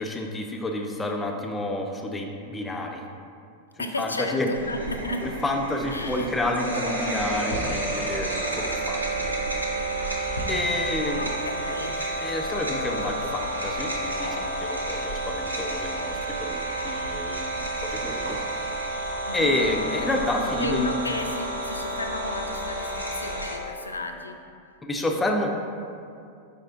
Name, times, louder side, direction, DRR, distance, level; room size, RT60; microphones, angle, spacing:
voice 1, 0.0-3.0 3.8-4.5 5.2-9.3 10.5-11.3 12.2-18.7 19.3-20.9 24.8-25.5, left 1 dB, 15° left, 2 dB, 0.4 m, -29 dB
voice 2, 3.8-5.3 5.9-6.3 10.2-10.5 11.2-12.1 19.3-19.5 20.6-24.4, left 2 dB, 80° left, 5 dB, 0.3 m, -33 dB
sound 1, 4.5-23.6, right 1 dB, 85° right, 0.6 m, -30 dB
5.0 x 4.2 x 2.5 m, 2.4 s
figure-of-eight pair, 90°, 0 cm